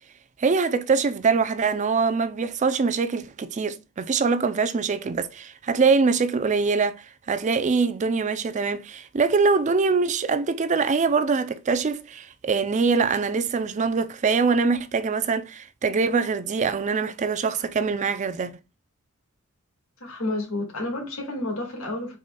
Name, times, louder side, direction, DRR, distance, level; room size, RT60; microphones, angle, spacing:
voice 1, 0.4-18.6, right 4 dB, 35° right, 0.4 m, -23 dB
voice 2, 20.0-22.2, left 2 dB, 75° left, 1.8 m, -30 dB
4.8 x 4.1 x 2.2 m
head